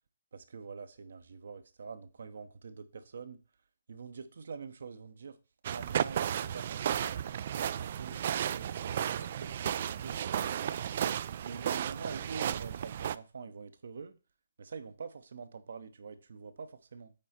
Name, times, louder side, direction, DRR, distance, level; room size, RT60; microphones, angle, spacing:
voice 1, 0.3-3.4 3.9-5.4 5.7-7.2 7.6-10.8 11.4-14.2 14.6-17.1, right 5 dB, 65° right, 0.9 m, -45 dB
sound 1, 5.6-13.2, right 9 dB, 45° right, 0.3 m, -34 dB
8.7 x 4.2 x 4.4 m
hypercardioid pair, 150°, 0 cm